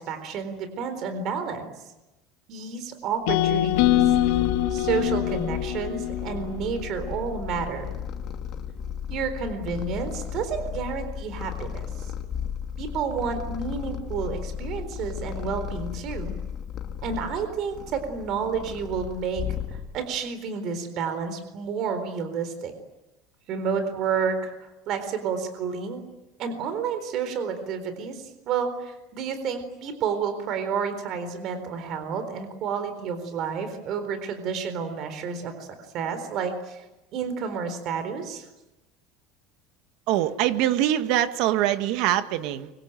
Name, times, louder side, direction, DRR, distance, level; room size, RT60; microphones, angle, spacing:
voice 1, 0.0-1.7 2.5-4.2 4.7-7.9 9.1-11.9 12.8-16.4 17.0-19.4 19.9-22.7 23.5-26.0 26.4-35.7 35.9-36.8 37.1-38.4, right 6 dB, 45° right, 9 dB, 4.0 m, -30 dB
sound 1, 3.3-7.4, left 13 dB, 75° left, 1.9 m, -24 dB
Purr, 3.4-20.1, left 8 dB, 35° left, 2.3 m, -35 dB
voice 2, 40.1-42.7, right 12 dB, 60° right, 10 dB, 1.7 m, -23 dB
25.0 x 24.5 x 9.1 m, 0.98 s
cardioid pair, 160°, 0 cm